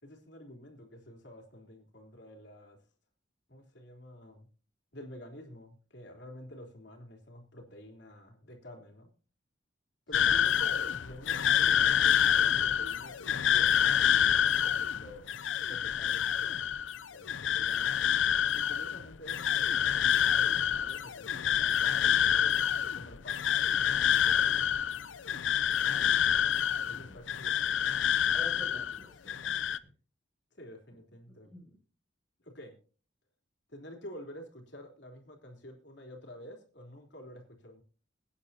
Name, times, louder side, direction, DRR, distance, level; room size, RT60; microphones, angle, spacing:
voice 1, 0.0-2.8 3.5-4.5 4.9-9.1 10.1-15.4 15.7-16.6 17.1-18.0 18.5-24.6 26.3-27.8 30.5-31.5 32.4-32.8 33.7-37.8, equal, 65° left, 3 dB, 3.5 m, -49 dB
sound 1, 10.1-29.0 29.3-29.8, left 9 dB, 85° left, 0.6 m, -27 dB
voice 2, 10.1-10.5 25.8-26.1 26.8-27.2 28.3-29.6 31.4-31.8, left 1 dB, ahead, -4 dB, 7.2 m, -50 dB
22.5 x 9.8 x 2.8 m, 0.39 s
head